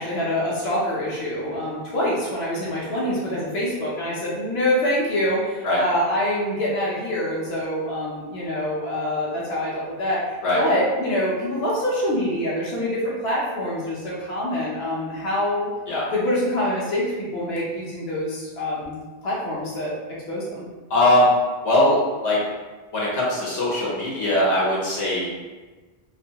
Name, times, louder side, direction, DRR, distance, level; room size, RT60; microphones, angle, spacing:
voice 1, 0.0-15.7 16.1-19.0 19.2-19.9 20.3-20.6, left 1 dB, 70° left, -6 dB, 0.9 m, -25 dB
voice 2, 20.9-21.3 21.6-22.4 22.9-25.3, left 1 dB, 90° left, -6 dB, 1.1 m, -20 dB
2.5 x 2.2 x 2.7 m, 1.3 s
omnidirectional pair, 1.1 m